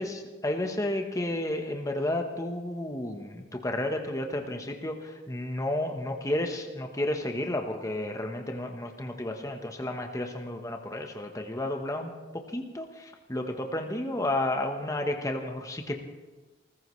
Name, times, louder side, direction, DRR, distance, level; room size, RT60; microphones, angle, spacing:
voice 1, 0.0-16.0, left 1 dB, 20° left, 3 dB, 1.1 m, -32 dB
29.0 x 15.0 x 3.2 m, 1.2 s
head